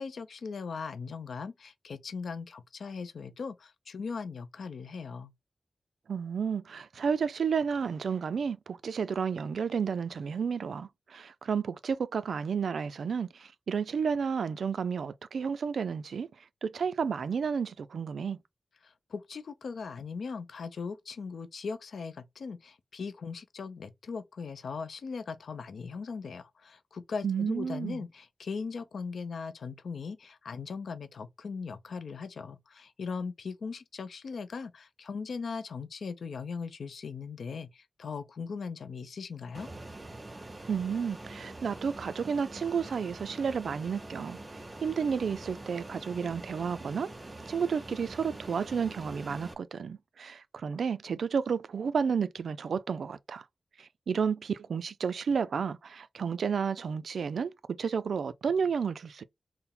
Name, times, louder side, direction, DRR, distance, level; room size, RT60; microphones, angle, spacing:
voice 1, 0.0-5.3 18.8-39.7, left 5 dB, 80° left, 0.5 m, -39 dB
voice 2, 6.1-16.3 16.6-18.4 27.2-28.0 40.7-44.4 44.8-47.1 47.5-53.4 53.8-57.5 57.8-59.2, right 6 dB, 85° right, 0.3 m, -31 dB
Fixed-wing aircraft airplane, 39.5-49.5, right 2 dB, 30° right, 0.6 m, -45 dB
4.2 x 2.0 x 3.7 m
wide cardioid pair, 95°, 0 cm